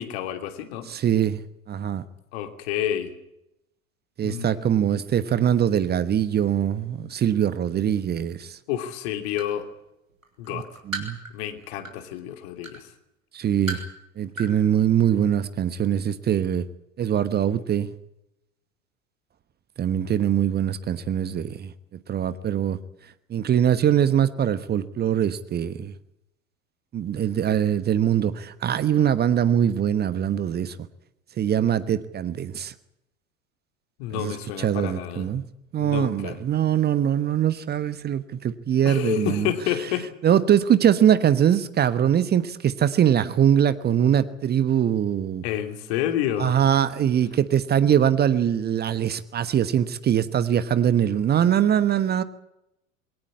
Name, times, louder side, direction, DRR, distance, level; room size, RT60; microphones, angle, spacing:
voice 1, 0.0-0.9 2.3-3.1 4.2-4.8 8.7-9.7 10.4-10.7 11.3-12.9 34.0-35.3 35.8-36.4 38.8-40.1 45.4-46.6, left 11 dB, 50° left, 3.0 m, -29 dB
voice 2, 0.9-2.0 4.2-8.6 10.5-11.2 13.3-13.8 14.2-16.6 17.0-17.9 19.8-21.7 22.1-22.8 23.3-25.9 26.9-30.8 31.4-32.7 34.1-35.4 35.7-39.5 40.2-45.4 46.4-52.2, right 9 dB, 25° right, 1.2 m, -22 dB
sound 1, 8.3-8.4 8.9-9.6 10.1-12.1 12.6-12.8 13.3-14.0 14.3-14.5 14.8-14.9, right 2 dB, 85° right, 4.1 m, -35 dB
23.0 x 18.0 x 8.7 m
figure-of-eight pair, 80°, 39 cm